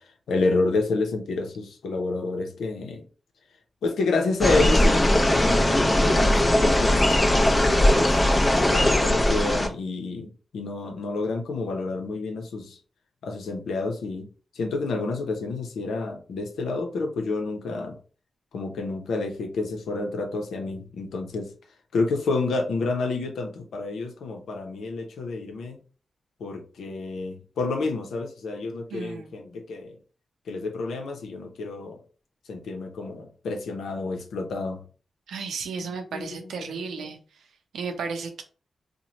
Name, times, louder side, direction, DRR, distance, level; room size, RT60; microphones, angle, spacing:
voice 1, 0.3-3.0 3.8-8.1 8.7-12.8 13.2-14.3 14.6-17.9 18.5-21.5 21.9-25.8 26.4-30.0 30.5-32.0 32.5-34.8 35.8-37.1, left 3 dB, 85° left, 0.6 m, -29 dB
sound 1, 4.4-9.7, left 1 dB, 25° left, 0.7 m, -20 dB
voice 2, 28.9-29.3 35.3-37.2 37.7-38.4, right 5 dB, 90° right, 0.5 m, -33 dB
3.0 x 2.1 x 3.9 m
cardioid pair, 50°, 0 cm